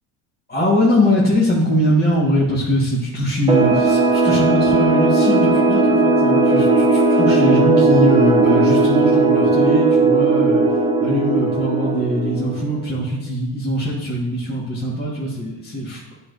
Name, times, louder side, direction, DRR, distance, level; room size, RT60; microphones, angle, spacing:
voice 1, 0.5-10.6 11.0-16.0, equal, 20° left, -7 dB, 1.6 m, -21 dB
sound 1, 3.5-12.8, right 3 dB, 10° right, 0.6 m, -16 dB
9.2 x 4.7 x 2.7 m, 1.0 s
supercardioid pair, 100°, 46 cm